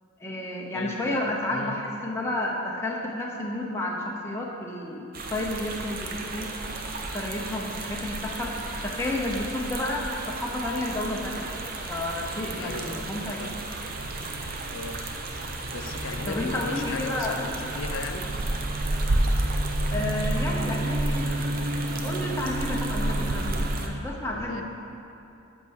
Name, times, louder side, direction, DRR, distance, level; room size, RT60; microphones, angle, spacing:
voice 1, 0.2-6.5 7.1-11.5 11.9-13.5 16.3-17.4 19.9-21.5 22.0-24.6, left 1 dB, 15° left, -3 dB, 0.8 m, -31 dB
voice 2, 0.7-1.2 1.5-1.7 12.6-13.1 13.4-13.5 14.7-15.0 15.7-18.3 24.3-24.6, left 3 dB, 70° left, 7 dB, 0.6 m, -37 dB
sound 1, 5.1-23.9, right 2 dB, 45° right, 0.7 m, -30 dB
8.2 x 5.5 x 6.5 m, 2.8 s
head